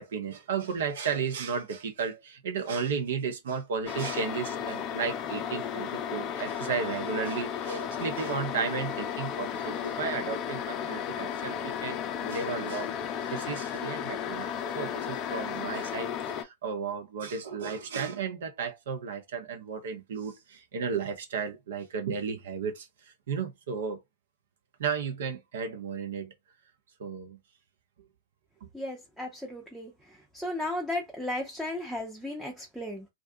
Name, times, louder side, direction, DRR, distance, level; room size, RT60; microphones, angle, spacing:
voice 1, 0.0-13.0 13.2-24.0 24.8-26.3 27.0-27.4, right 6 dB, 65° right, 0.7 m, -34 dB
sound 1, 3.9-16.4, left 8 dB, 35° left, 0.4 m, -34 dB
voice 2, 28.7-29.9 30.3-33.1, left 1 dB, ahead, 0.6 m, -35 dB
2.6 x 2.3 x 2.6 m
figure-of-eight pair, 100°, 0 cm